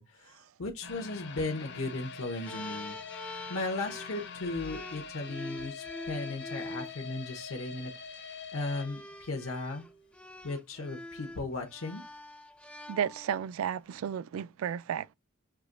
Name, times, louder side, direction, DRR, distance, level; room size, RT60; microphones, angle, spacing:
voice 1, 0.0-3.0 3.5-7.9 8.2-9.8 10.4-12.0, left 2 dB, 80° left, 0.8 m, -36 dB
sound 1, 0.8-9.8 10.1-10.2 10.7-10.8, left 5 dB, 55° left, 0.6 m, -45 dB
sound 2, 2.4-7.0 8.0-8.2 8.7-13.5, left 1 dB, 5° left, 0.3 m, -45 dB
voice 2, 12.9-15.1, right 8 dB, 75° right, 0.3 m, -33 dB
5.9 x 2.9 x 2.5 m
head